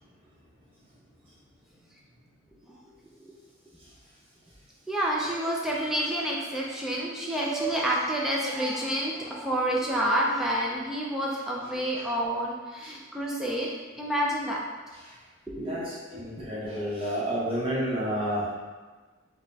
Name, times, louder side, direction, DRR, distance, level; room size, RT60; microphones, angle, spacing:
voice 1, 4.9-13.7 14.0-14.6 15.5-15.8 16.4-16.6, right 1 dB, ahead, -4 dB, 0.3 m, -29 dB
voice 2, 15.6-18.5, equal, 25° right, -7 dB, 0.9 m, -31 dB
4.8 x 2.2 x 2.7 m, 1.4 s
head